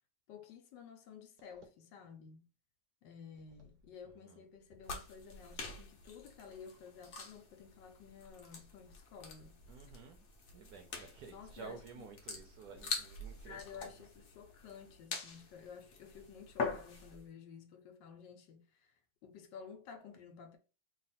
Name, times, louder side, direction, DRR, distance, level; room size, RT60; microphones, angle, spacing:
voice 1, 0.3-2.5 3.0-9.6 11.2-12.1 12.3-12.4 13.4-20.6, left 6 dB, 75° left, 1.2 m, -53 dB
sound 1, 4.8-17.2, left 4 dB, 60° left, 1.0 m, -45 dB
voice 2, 9.7-10.2 10.5-13.9, right 5 dB, 70° right, 0.9 m, -52 dB
3.2 x 2.4 x 4.0 m
omnidirectional pair, 2.1 m